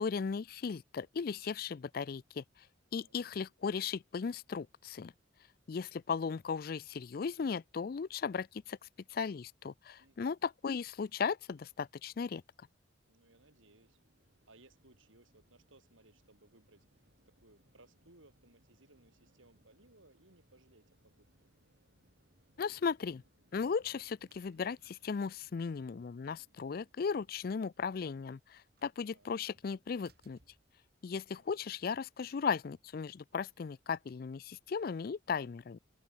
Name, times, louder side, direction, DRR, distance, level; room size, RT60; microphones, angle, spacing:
voice 1, 0.0-2.4 2.9-5.1 5.7-8.8 9.1-12.4 22.6-23.2 23.5-30.4 31.0-35.8, left 5 dB, 50° left, 0.4 m, -36 dB
voice 2, 10.0-10.3 13.1-14.0 14.5-21.3 29.1-29.3 31.4-31.6, right 2 dB, 85° right, 5.7 m, -64 dB
sound 1, 13.3-31.4, right 1 dB, 55° right, 7.8 m, -71 dB
open air
head